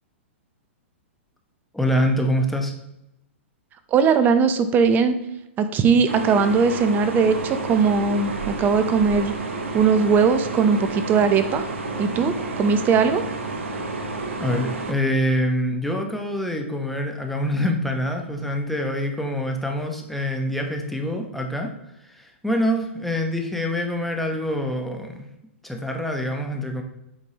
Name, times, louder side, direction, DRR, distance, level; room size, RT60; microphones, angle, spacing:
voice 1, 1.7-2.7 14.4-21.7 22.0-25.3 25.6-26.8, equal, ahead, 2 dB, 1.1 m, -25 dB
voice 2, 3.9-5.2 5.6-9.3 9.7-11.6 12.0-13.2, right 5 dB, 25° right, 10 dB, 0.7 m, -19 dB
sound 1, 6.1-14.9, right 2 dB, 80° right, 1.3 m, -30 dB
8.0 x 5.2 x 2.9 m, 0.85 s
hypercardioid pair, 120°, 7 cm